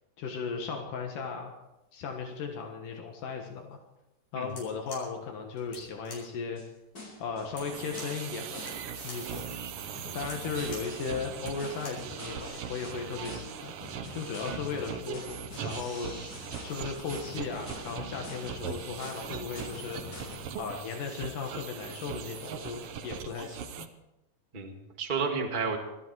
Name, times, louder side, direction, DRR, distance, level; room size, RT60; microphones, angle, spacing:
voice 1, 0.2-1.5 1.9-3.8 4.3-6.6 7.2-8.6 9.0-9.5 10.1-13.7 14.1-15.4 15.6-16.2 16.6-20.3 20.6-23.9, left 5 dB, 75° left, 2 dB, 3.1 m, -36 dB
sound 1, 4.4-12.1, left 2 dB, 50° left, 6.7 m, -49 dB
sound 2, 6.2-6.3 6.6-6.7 7.0-7.5 7.8-20.5, left 2 dB, 30° left, 4.3 m, -46 dB
sound 3, 7.6-23.9, right 8 dB, 65° right, 1.6 m, -40 dB
voice 2, 24.5-25.8, right 5 dB, 20° right, 2 dB, 1.5 m, -32 dB
21.5 x 13.5 x 4.8 m, 0.97 s
omnidirectional pair, 3.8 m